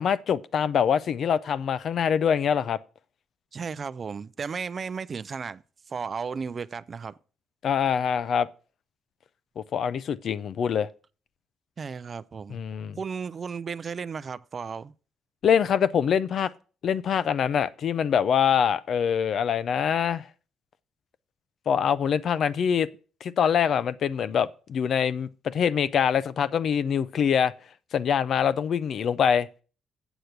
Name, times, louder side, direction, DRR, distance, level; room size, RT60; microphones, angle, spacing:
voice 1, 0.0-2.8 7.6-8.5 9.6-10.9 12.5-13.0 15.4-16.5 16.8-20.2 21.7-22.9 23.2-27.5 27.9-29.5, left 8 dB, 60° left, 0.5 m, -24 dB
voice 2, 3.5-5.6 5.9-7.2 11.8-12.6 13.0-14.9, right 5 dB, 40° right, 0.4 m, -34 dB
8.0 x 6.6 x 5.8 m
cardioid pair, 90°, 0 cm